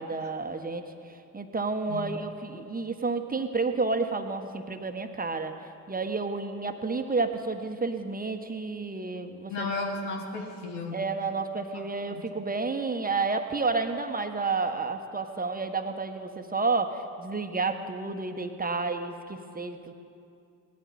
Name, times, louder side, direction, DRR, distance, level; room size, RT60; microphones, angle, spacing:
voice 1, 0.0-5.6 5.9-9.7 10.9-19.9, right 4 dB, 20° right, 6 dB, 1.2 m, -30 dB
voice 2, 9.5-11.0 12.1-12.3, left 3 dB, 80° left, 2 dB, 1.7 m, -34 dB
18.5 x 13.0 x 4.2 m, 2.6 s
hypercardioid pair, 45°, 40 cm